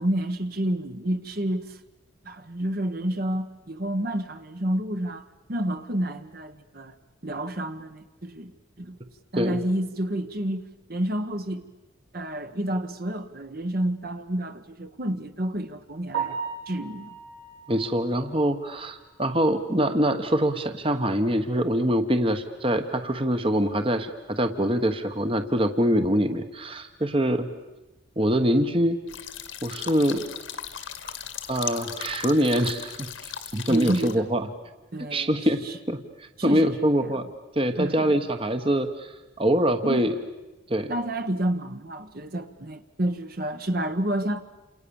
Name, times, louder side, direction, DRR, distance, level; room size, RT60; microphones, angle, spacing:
voice 1, 0.0-1.8 2.2-7.0 7.2-9.0 9.3-11.6 12.1-16.4 16.7-17.2 33.7-34.3 34.9-35.3 35.6-35.7 36.4-37.1 37.8-38.2 39.8-40.1 40.9-44.4, right 1 dB, 45° right, 1.3 m, -29 dB
Piano, 16.1-20.1 20.5-20.6 21.1-21.2 21.5-21.6 24.7-24.8 33.3-33.5, right 6 dB, 80° right, 7.6 m, -37 dB
voice 2, 17.7-27.5 28.2-29.0 29.6-30.2 31.1-31.2 31.5-34.5 35.1-37.3 37.5-40.1 40.7-40.9, equal, 25° right, 1.2 m, -24 dB
sound 1, 29.1-34.1, left 9 dB, 75° left, 2.1 m, -37 dB
29.0 x 27.5 x 7.1 m
head